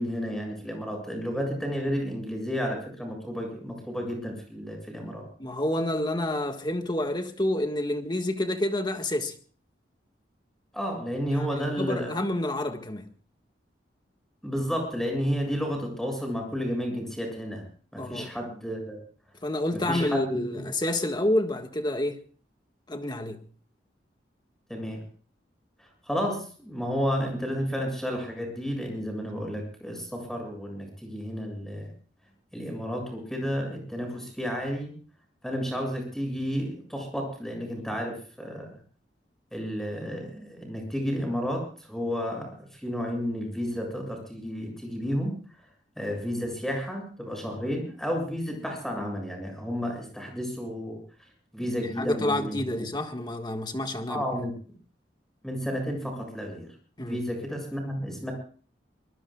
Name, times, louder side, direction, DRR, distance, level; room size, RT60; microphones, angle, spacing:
voice 1, 0.0-5.3 10.7-12.1 14.4-17.6 17.9-19.0 19.7-20.2 20.5-20.6 24.7-25.0 25.8-31.9 32.5-34.9 35.4-38.7 39.5-45.3 46.0-51.0 51.5-52.8 54.1-54.5 55.4-56.7 57.0-58.3, equal, ahead, 7.5 m, -31 dB
voice 2, 5.4-9.3 11.3-11.5 11.8-13.0 18.0-18.3 19.4-22.2 22.9-23.4 52.0-54.2 57.0-57.2, left 1 dB, 25° left, 1.7 m, -28 dB
24.5 x 20.5 x 2.4 m
head